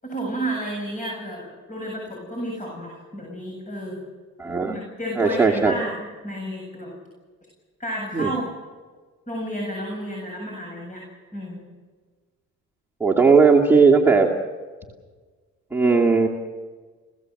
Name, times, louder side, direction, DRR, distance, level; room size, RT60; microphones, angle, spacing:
voice 1, 0.0-4.0 4.6-7.0 7.8-8.5 9.3-11.0 11.3-11.6, right 1 dB, 25° left, 0 dB, 7.7 m, -31 dB
voice 2, 4.4-4.8 5.2-5.7 8.1-8.3 13.0-14.3 15.7-16.3, right 4 dB, 10° right, -3 dB, 2.4 m, -17 dB
29.5 x 17.0 x 7.8 m, 1.4 s
cardioid pair, 90°, 30 cm